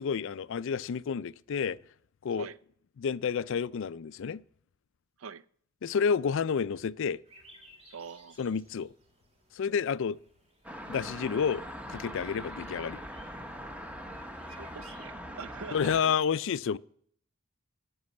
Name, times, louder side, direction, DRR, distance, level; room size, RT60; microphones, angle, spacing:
voice 1, 0.0-1.8 2.2-2.5 3.0-4.4 5.8-7.2 8.4-8.9 9.5-10.2 10.9-11.6 11.9-13.0 15.7-16.8, left 6 dB, 65° left, 0.4 m, -30 dB
sound 1, 7.2-15.1, right 1 dB, 30° right, 2.8 m, -60 dB
voice 2, 7.9-8.4 14.5-16.2, right 6 dB, 70° right, 0.5 m, -44 dB
sound 2, 10.6-16.0, equal, 5° right, 1.0 m, -42 dB
13.0 x 6.2 x 8.3 m
head